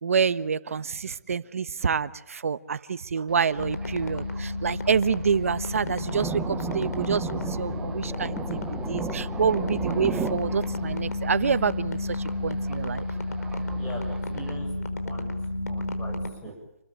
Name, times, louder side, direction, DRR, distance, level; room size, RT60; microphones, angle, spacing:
voice 1, 0.0-12.2 12.4-13.0 16.4-16.5, right 6 dB, 60° right, 14 dB, 1.3 m, -27 dB
Thunder, 3.3-14.6, right 6 dB, 5° right, 1.2 m, -37 dB
sound 1, 3.6-16.3, left 2 dB, 75° left, 4.9 m, -31 dB
voice 2, 13.8-14.7 15.0-15.4 15.7-16.5, left 1 dB, 10° left, 1 dB, 7.9 m, -41 dB
28.5 x 22.0 x 8.8 m, 0.88 s
hypercardioid pair, 160°, 9 cm